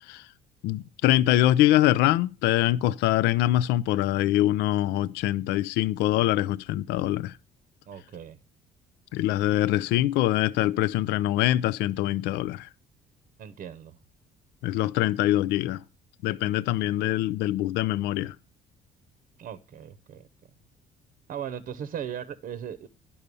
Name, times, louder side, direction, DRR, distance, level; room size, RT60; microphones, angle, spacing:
voice 1, 0.6-7.4 9.1-12.7 14.6-15.8 16.2-18.4, left 14 dB, 85° left, 0.4 m, -24 dB
voice 2, 7.9-8.4 13.4-14.0 19.4-20.2 21.3-22.9, right 9 dB, 55° right, 0.8 m, -37 dB
11.0 x 5.5 x 6.8 m
cardioid pair, 110°, 17 cm